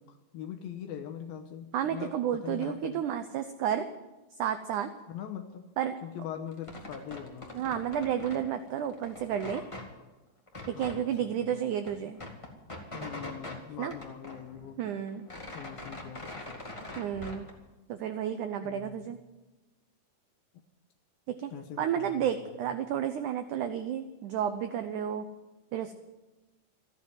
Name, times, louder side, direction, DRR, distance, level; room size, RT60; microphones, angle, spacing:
voice 1, 0.0-3.1 5.1-5.6 6.0-7.5 10.7-11.7 12.9-14.8 15.5-17.1 18.6-19.1 21.5-22.8, left 8 dB, 75° left, 5 dB, 2.7 m, -42 dB
voice 2, 1.7-3.9 4.4-4.9 5.8-5.9 7.5-9.6 10.7-12.2 13.8-13.9 14.8-15.3 17.0-17.5 17.9-19.2 21.3-21.5 21.8-25.3 25.7-25.9, right 9 dB, 90° right, 9 dB, 1.7 m, -31 dB
sound 1, 6.5-8.5 8.8-9.9 10.5-11.0 11.4-11.5 11.7-13.6 13.9-14.8 15.1-17.5, left 1 dB, 20° left, 0.8 m, -43 dB
14.5 x 10.5 x 9.2 m, 1.1 s
omnidirectional pair, 4.5 m